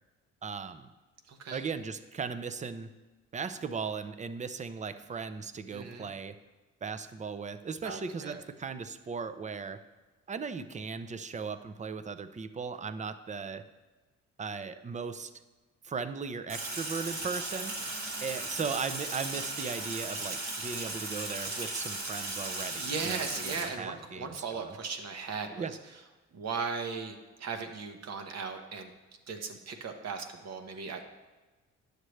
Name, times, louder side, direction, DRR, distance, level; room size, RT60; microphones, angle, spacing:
voice 1, 0.4-0.9 1.5-2.9 3.3-6.4 6.8-9.8 10.3-13.7 14.4-15.3 15.8-17.7 18.2-24.7 25.6-25.7, right 5 dB, 25° right, 11 dB, 0.5 m, -37 dB
voice 2, 1.3-1.7 5.7-6.1 7.8-8.4 22.5-25.8 26.3-28.9 29.3-31.0, right 5 dB, 60° right, 5 dB, 1.0 m, -37 dB
Sink (filling or washing), 16.5-23.6, right 2 dB, 75° right, 1.9 m, -37 dB
9.8 x 6.6 x 3.2 m, 1.2 s
cardioid pair, 90°, 30 cm